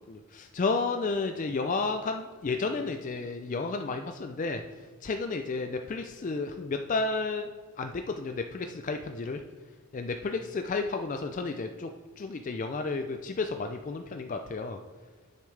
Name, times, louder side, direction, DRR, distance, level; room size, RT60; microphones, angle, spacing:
voice 1, 0.1-4.6 5.0-7.5 7.8-9.4 9.9-11.9 12.2-14.8, left 3 dB, 35° left, 6 dB, 0.3 m, -32 dB
9.6 x 6.9 x 3.3 m, 1.5 s
head